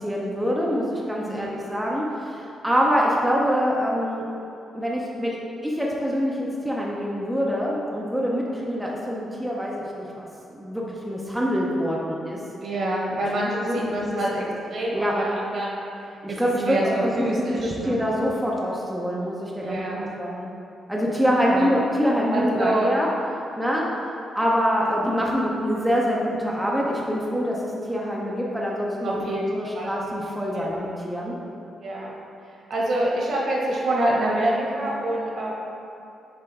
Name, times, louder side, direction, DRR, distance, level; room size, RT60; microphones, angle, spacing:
voice 1, 0.0-4.3 4.7-5.4 5.6-12.4 13.5-14.1 14.9-15.1 16.2-20.5 20.9-23.1 23.6-23.9 24.3-31.3, equal, 5° right, -4 dB, 0.6 m, -25 dB
voice 2, 1.2-1.6 12.6-14.4 14.7-15.8 16.3-18.0 19.6-20.1 21.5-21.7 22.3-22.9 29.0-29.4 29.7-29.9 30.5-30.8 31.8-32.1 32.7-35.5, right 1 dB, 60° right, -4 dB, 1.3 m, -26 dB
6.8 x 4.4 x 3.5 m, 2.7 s
cardioid pair, 140°, 0 cm